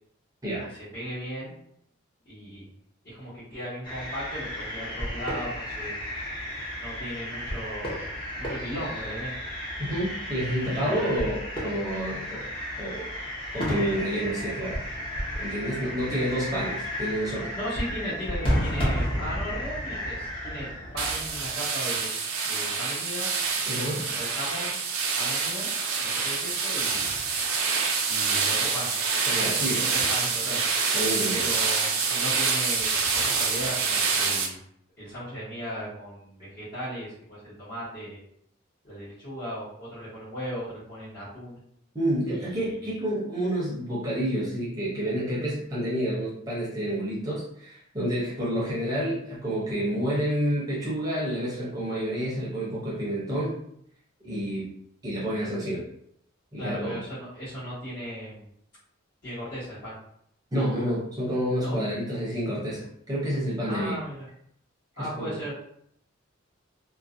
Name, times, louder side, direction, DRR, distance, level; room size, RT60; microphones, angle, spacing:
voice 1, 0.9-1.6 2.2-2.7 3.0-6.0 6.8-9.3 10.7-11.1 17.5-22.1 22.4-23.3 23.9-24.8 25.2-25.7 26.0-27.1 28.1-28.9 29.4-30.6 31.3-34.6 35.0-38.2 38.8-41.6 42.3-42.5 42.8-42.9 56.6-58.4 59.2-60.0 61.6-61.8 63.7-64.2 65.0-65.5, equal, 50° left, -14 dB, 1.2 m, -37 dB
sound 1, 3.8-21.5, equal, 25° left, 0.6 m, -33 dB
voice 2, 9.8-12.5 12.8-13.1 13.5-14.9 15.4-17.5 23.7-24.1 29.3-29.8 30.9-31.5 41.9-53.6 54.2-54.7 55.0-55.8 56.5-57.0 60.5-64.0 65.0-65.4, equal, 20° right, -8 dB, 0.6 m, -29 dB
sound 2, 21.0-34.5, right 5 dB, 80° right, 0.4 m, -26 dB
2.5 x 2.1 x 2.5 m, 0.70 s
head